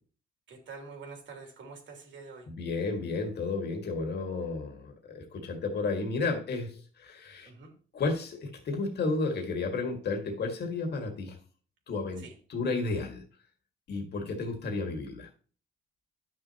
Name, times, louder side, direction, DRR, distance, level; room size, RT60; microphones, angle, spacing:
voice 1, 0.5-2.5 7.5-7.7 12.2-12.3, right 4 dB, 70° right, 2 dB, 3.0 m, -46 dB
voice 2, 2.5-7.5 7.9-11.4 11.9-13.2 13.9-15.3, left 3 dB, 55° left, 3 dB, 2.0 m, -32 dB
11.5 x 6.4 x 2.9 m, 0.40 s
cardioid pair, 90°, 20 cm